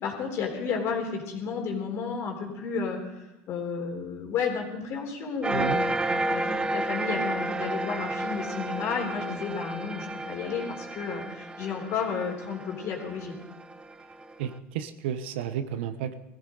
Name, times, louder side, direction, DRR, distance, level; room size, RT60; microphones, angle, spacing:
voice 1, 0.0-3.0 3.5-13.3, left 6 dB, 50° left, 1 dB, 3.7 m, -32 dB
sound 1, 5.4-14.4, right 2 dB, 15° right, 0.7 m, -32 dB
voice 2, 5.5-5.8 14.4-16.2, right 9 dB, 80° right, 10 dB, 0.8 m, -32 dB
19.0 x 14.5 x 3.9 m, 0.98 s
supercardioid pair, 100°, 6 cm